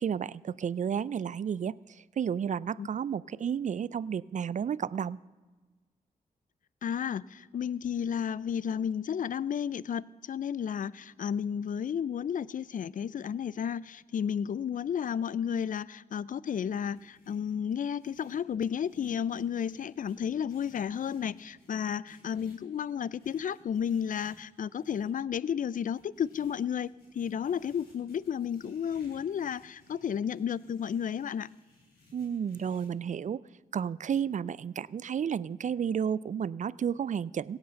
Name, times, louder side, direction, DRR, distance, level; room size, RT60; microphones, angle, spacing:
voice 1, 0.0-1.7 2.2-5.2 32.1-33.4 33.7-37.6, right 8 dB, 50° right, 22 dB, 0.4 m, -32 dB
voice 2, 6.8-31.5, left 8 dB, 55° left, 22 dB, 0.4 m, -32 dB
sound 1, 16.7-25.1 25.8-32.9, left 2 dB, 85° left, 3.2 m, -62 dB
16.5 x 8.1 x 6.9 m, 1.3 s
supercardioid pair, 45°, 16 cm